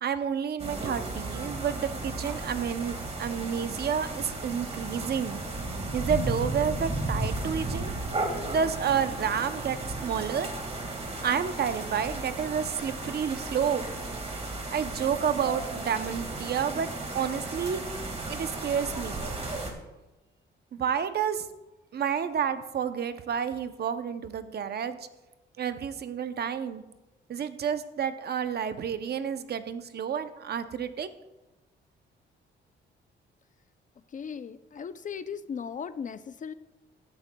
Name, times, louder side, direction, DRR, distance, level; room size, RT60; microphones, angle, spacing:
voice 1, 0.0-5.4 5.9-7.9 8.4-10.5 11.2-13.8 14.7-16.9 17.1-17.8 18.3-19.2 20.7-21.5 21.9-25.0 25.6-26.8 27.3-31.1, right 7 dB, 55° right, 10 dB, 0.7 m, -30 dB
sound 1, 0.6-19.7, right 2 dB, 30° right, 1.9 m, -34 dB
voice 2, 34.1-36.5, left 6 dB, 40° left, 13 dB, 0.5 m, -37 dB
14.0 x 11.5 x 2.3 m, 1.0 s
cardioid pair, 120°, 20 cm